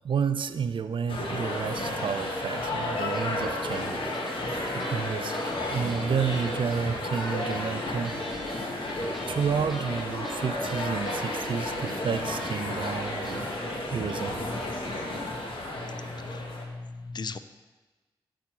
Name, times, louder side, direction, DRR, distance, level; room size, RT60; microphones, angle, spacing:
voice 1, 0.0-4.0 4.7-8.2 8.6-8.7 9.3-13.5 13.9-14.5, right 6 dB, 60° right, 11 dB, 0.4 m, -31 dB
sound 1, 1.1-16.7, left 1 dB, 65° left, 1.2 m, -32 dB
sound 2, 3.1-15.2, right 1 dB, 5° right, 1.2 m, -43 dB
voice 2, 15.7-17.4, left 4 dB, 50° left, 12 dB, 0.4 m, -38 dB
8.2 x 3.2 x 6.0 m, 1.2 s
cardioid pair, 45°, 10 cm